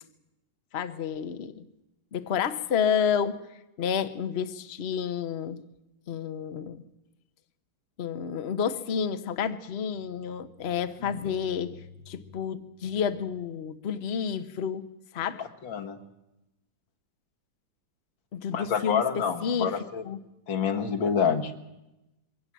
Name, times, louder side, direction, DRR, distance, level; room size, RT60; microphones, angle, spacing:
voice 1, 0.7-1.6 2.1-3.4 3.8-5.6 6.1-6.8 8.0-11.8 12.1-14.8 15.1-15.4 18.3-19.0 19.4-19.7 20.0-20.2, left 7 dB, 45° left, 10 dB, 1.0 m, -30 dB
voice 2, 15.4-16.0 18.5-20.0 20.5-21.5, left 7 dB, 80° left, 5 dB, 2.2 m, -27 dB
22.0 x 17.0 x 7.5 m, 0.94 s
omnidirectional pair, 2.1 m